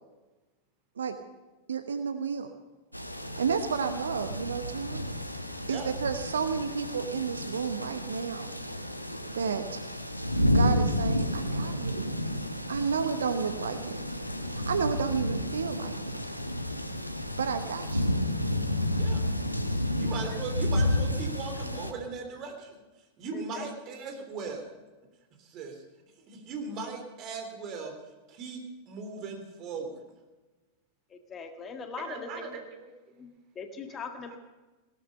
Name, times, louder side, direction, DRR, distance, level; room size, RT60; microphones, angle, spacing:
voice 1, 1.7-2.5 3.4-5.0 5.7-8.5 9.3-9.8 10.5-12.2 12.7-14.0 14.5-16.2 17.4-18.1, right 6 dB, 70° right, 9 dB, 0.9 m, -31 dB
sound 1, 2.9-21.9, left 1 dB, 85° left, 1.0 m, -31 dB
voice 2, 18.9-19.3 20.0-22.8 23.2-24.7 25.4-25.8 26.3-27.9 28.3-30.0 32.0-32.9 33.9-34.0 34.3-34.4, right 4 dB, 35° right, 4 dB, 3.4 m, -38 dB
voice 3, 23.3-23.7 31.1-32.6 33.2-34.4, left 5 dB, 25° left, 6 dB, 1.7 m, -41 dB
18.0 x 12.5 x 5.6 m, 1.2 s
figure-of-eight pair, 90°, 0 cm